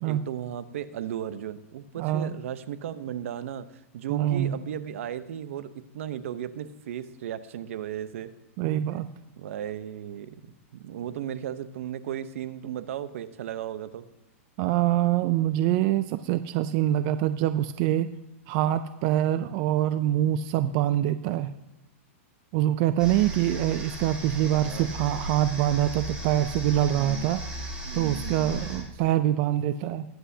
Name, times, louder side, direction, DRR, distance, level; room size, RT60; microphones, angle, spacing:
voice 1, 0.0-8.3 8.9-9.1 9.4-14.1 24.4-24.9 26.9-27.3 27.9-28.5, right 10 dB, 70° right, 13 dB, 0.8 m, -36 dB
voice 2, 2.0-2.3 4.1-4.5 8.6-9.1 14.6-18.1 18.5-21.5 22.5-27.4 27.9-30.1, right 12 dB, 35° right, 12 dB, 0.4 m, -25 dB
sound 1, 23.0-28.8, equal, 10° right, 4.0 m, -37 dB
20.5 x 8.0 x 2.8 m, 0.96 s
supercardioid pair, 155°, 8 cm